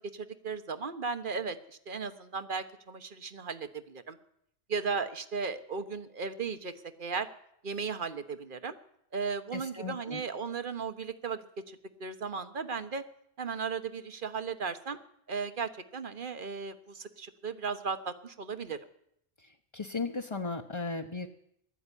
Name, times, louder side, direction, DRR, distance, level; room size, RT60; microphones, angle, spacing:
voice 1, 0.1-1.6 1.9-4.2 4.7-6.7 7.0-7.3 7.6-8.7 9.1-11.4 11.7-13.0 13.4-15.0 15.3-18.8, right 5 dB, 50° right, 10 dB, 1.4 m, -36 dB
voice 2, 9.5-10.2 19.4-21.3, left 3 dB, 25° left, 3 dB, 1.0 m, -36 dB
20.0 x 13.5 x 10.0 m, 0.75 s
omnidirectional pair, 1.2 m